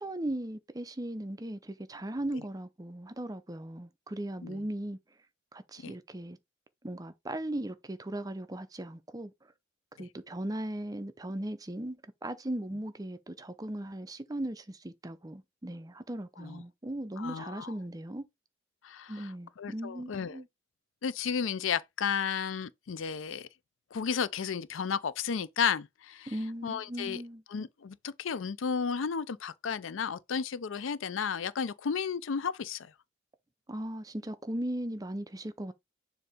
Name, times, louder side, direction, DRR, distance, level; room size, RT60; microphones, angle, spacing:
voice 1, 0.0-5.0 5.5-6.4 6.8-9.3 10.0-18.2 19.1-20.5 26.3-27.4 33.7-35.7, right 1 dB, 20° right, 0.5 m, -38 dB
voice 2, 17.2-17.7 18.8-19.3 19.6-20.4 21.0-23.5 23.9-26.3 26.6-27.2 27.5-32.8, left 6 dB, 75° left, 0.5 m, -33 dB
6.9 x 2.7 x 5.0 m
head